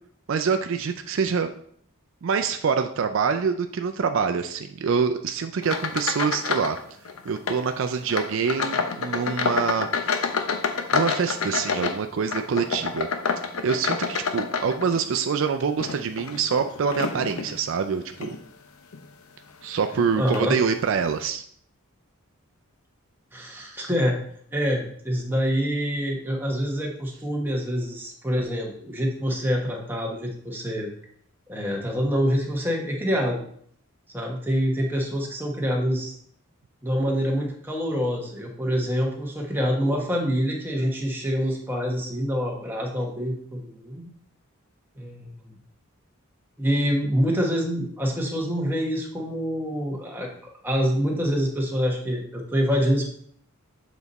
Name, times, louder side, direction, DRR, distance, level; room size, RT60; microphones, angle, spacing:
voice 1, 0.3-1.5 2.2-6.8 7.3-10.2 10.9-13.1 13.6-18.3 19.6-21.4, right 6 dB, 60° right, 7 dB, 0.4 m, -25 dB
sound 1, 5.6-6.8 7.0-7.6 8.1-15.2 15.7-17.5 18.1-18.4 18.9-19.0 19.9-20.0 20.3-20.5, left 5 dB, 80° left, 0.7 m, -28 dB
voice 2, 20.2-20.6 23.3-24.2 24.5-30.9 31.5-33.4 34.1-36.2 36.8-44.1 45.0-45.5 46.6-50.3 50.6-53.1, equal, 10° right, -1 dB, 1.2 m, -26 dB
7.0 x 4.1 x 4.1 m, 0.63 s
head